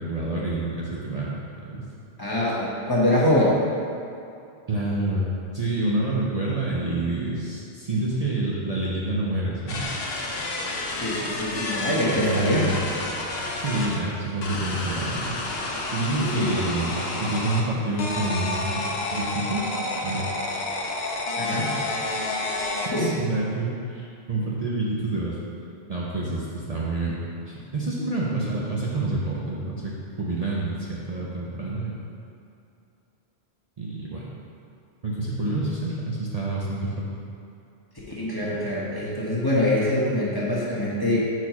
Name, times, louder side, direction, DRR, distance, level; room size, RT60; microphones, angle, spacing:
voice 1, 0.0-1.3 1.6-1.8 4.7-9.9 12.2-12.8 13.6-15.4 15.9-18.9 19.1-19.8 20.0-20.7 21.0-21.2 21.7-21.8 23.0-25.4 25.9-27.2 27.7-29.9 30.2-32.0 33.8-34.3 35.0-37.1, right 2 dB, 45° right, -6 dB, 0.6 m, -28 dB
voice 2, 2.2-3.6 11.0-12.8 16.2-16.5 21.4-21.7 22.9-23.1 38.2-41.2, left 1 dB, 20° left, -7 dB, 1.0 m, -24 dB
sound 1, 9.7-14.0 14.4-17.6 18.0-23.2, left 2 dB, 70° left, 0.9 m, -30 dB
4.4 x 4.3 x 5.7 m, 2.6 s
omnidirectional pair, 1.1 m